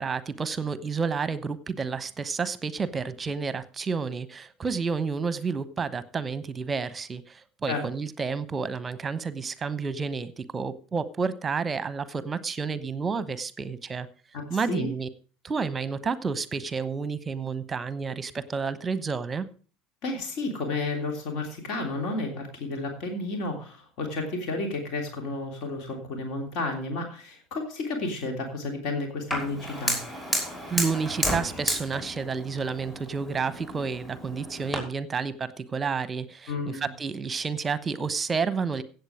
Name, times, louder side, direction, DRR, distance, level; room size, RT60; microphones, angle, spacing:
voice 1, 0.0-14.1 14.5-15.1 15.4-19.5 30.7-38.8, right 5 dB, 25° right, 15 dB, 1.0 m, -30 dB
voice 2, 14.3-14.9 20.0-30.0 36.5-36.9, left 2 dB, 50° left, 3 dB, 3.2 m, -32 dB
Fire, 29.3-34.8, equal, 15° left, 5.7 m, -32 dB
16.0 x 8.1 x 4.9 m, 0.40 s
figure-of-eight pair, 70°, 0 cm